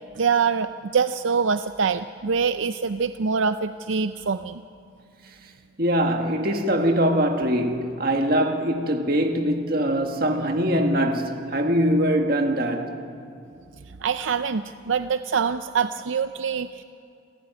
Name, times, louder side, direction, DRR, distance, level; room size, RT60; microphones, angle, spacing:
voice 1, 0.2-4.6 13.9-16.8, right 6 dB, 80° right, 0.5 m, -24 dB
voice 2, 5.8-13.0, equal, 50° right, 2.0 m, -22 dB
28.5 x 14.0 x 9.7 m
head